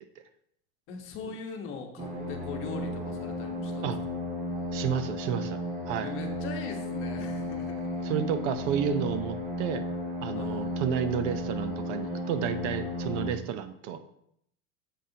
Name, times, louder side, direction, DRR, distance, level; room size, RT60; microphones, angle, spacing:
voice 1, 0.9-3.9 6.0-8.0 10.3-10.7, left 5 dB, 35° left, 2 dB, 1.2 m, -41 dB
sound 1, 2.0-13.3, left 1 dB, 25° right, 2.0 m, -34 dB
voice 2, 4.7-5.6 5.9-6.1 8.0-9.8 10.2-14.0, right 8 dB, 85° right, 10 dB, 0.9 m, -31 dB
8.5 x 7.6 x 2.9 m, 0.72 s
cardioid pair, 175°, 35 cm